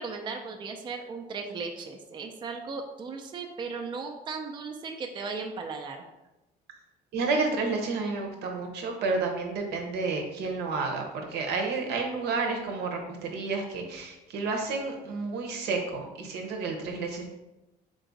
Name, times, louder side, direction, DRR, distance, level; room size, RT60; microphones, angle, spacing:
voice 1, 0.0-6.0, right 4 dB, 30° right, 3 dB, 0.4 m, -36 dB
voice 2, 7.1-17.3, right 4 dB, 80° right, 2 dB, 0.8 m, -30 dB
3.7 x 2.4 x 3.9 m, 1.0 s
cardioid pair, 110°, 17 cm